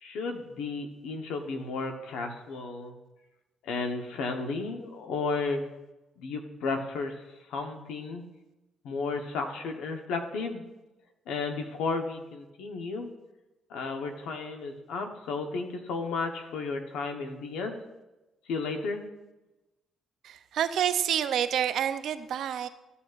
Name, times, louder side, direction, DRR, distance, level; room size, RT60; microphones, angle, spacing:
voice 1, 0.0-3.0 3.6-5.6 6.2-7.2 7.5-8.2 8.8-10.6 11.3-13.1 13.7-17.8 18.5-19.0, left 4 dB, 90° left, 5 dB, 1.0 m, -33 dB
voice 2, 20.2-22.7, right 9 dB, 75° right, 11 dB, 0.5 m, -28 dB
14.0 x 7.0 x 2.5 m, 1.0 s
cardioid pair, 90°, 0 cm